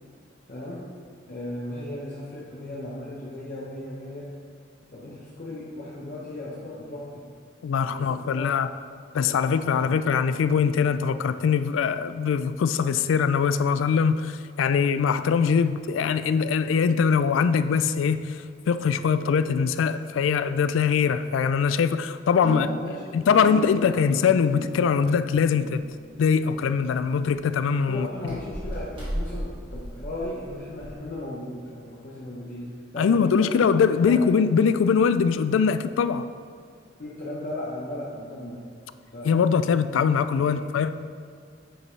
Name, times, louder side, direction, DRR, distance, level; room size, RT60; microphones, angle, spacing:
voice 1, 0.5-0.9 1.2-4.4 4.9-7.3 7.8-8.5 9.2-9.4 9.7-10.0 22.4-24.0 27.9-33.6 33.9-34.2 37.0-38.7 39.1-39.3 40.2-40.6, left 1 dB, 45° left, -6 dB, 0.9 m, -36 dB
voice 2, 7.6-8.7 9.1-22.7 23.1-25.8 26.2-28.1 33.0-36.3 39.2-40.9, left 6 dB, 85° left, 12 dB, 0.3 m, -22 dB
sound 1, 22.4-29.0 29.3-29.7 30.0-30.1, left 1 dB, 65° right, 1.8 m, -40 dB
sound 2, 25.7-30.9, equal, 25° right, 1.7 m, -37 dB
8.8 x 5.3 x 3.2 m, 2.3 s
head